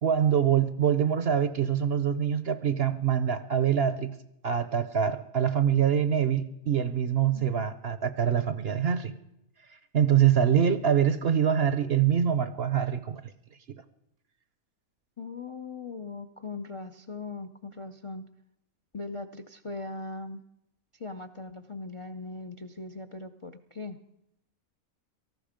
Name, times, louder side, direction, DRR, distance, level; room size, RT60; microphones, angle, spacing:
voice 1, 0.0-4.1 4.4-9.1 9.9-13.2, right 8 dB, 55° right, 12 dB, 0.8 m, -24 dB
voice 2, 7.3-7.7 15.2-18.2 18.9-20.4 21.0-24.0, left 3 dB, 35° left, 10 dB, 0.5 m, -39 dB
18.0 x 14.5 x 5.1 m, 0.82 s
omnidirectional pair, 1.5 m